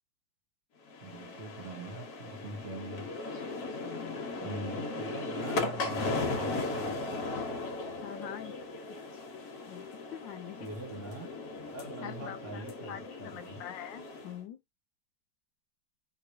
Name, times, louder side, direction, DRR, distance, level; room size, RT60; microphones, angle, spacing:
sound 1, 0.9-14.4, left 3 dB, 60° left, 1.4 m, -37 dB
voice 1, 1.0-3.2 4.4-7.4 10.6-11.3 11.7-13.6, right 2 dB, 45° right, 1.2 m, -43 dB
voice 2, 3.8-4.8 8.0-8.5 8.9-9.0 9.7-10.7 12.0-14.6, left 10 dB, 85° left, 1.3 m, -45 dB
3.0 x 2.9 x 2.6 m
omnidirectional pair, 2.0 m